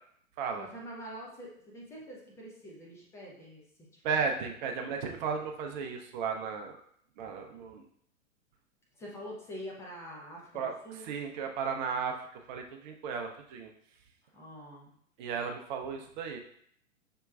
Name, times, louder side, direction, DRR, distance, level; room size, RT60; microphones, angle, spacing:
voice 1, 0.6-3.6 3.9-4.5 8.9-11.1 14.2-14.9, equal, 5° left, -3 dB, 0.4 m, -45 dB
voice 2, 4.0-6.8 7.2-7.8 10.5-10.7 11.0-13.7 15.2-16.4, right 5 dB, 35° right, 3 dB, 0.6 m, -34 dB
5.7 x 3.0 x 2.4 m, 0.66 s
figure-of-eight pair, 115°, 41 cm